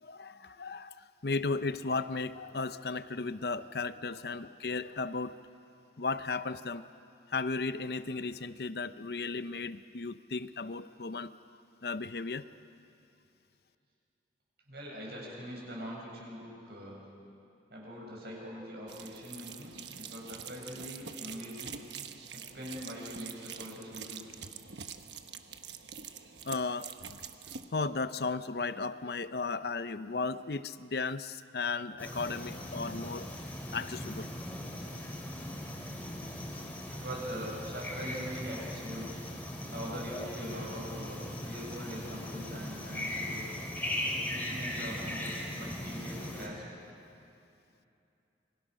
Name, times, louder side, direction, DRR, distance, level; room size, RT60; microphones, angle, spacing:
voice 1, 0.0-5.4 6.0-6.8 7.3-11.3 11.8-12.5 26.4-27.3 27.7-33.3 33.7-34.3 36.5-36.7, left 4 dB, 60° left, 13 dB, 0.7 m, -35 dB
voice 2, 14.7-17.0 17.7-21.8 22.3-24.3 32.4-32.6 34.7-35.7 36.9-39.1 39.7-43.6 44.3-46.6, equal, 60° right, -3 dB, 7.7 m, -43 dB
sound 1, 18.9-27.7, right 7 dB, 75° right, 1.2 m, -45 dB
sound 2, 32.0-46.5, left 1 dB, 10° left, 3.2 m, -39 dB
27.5 x 24.0 x 6.3 m, 2.6 s
head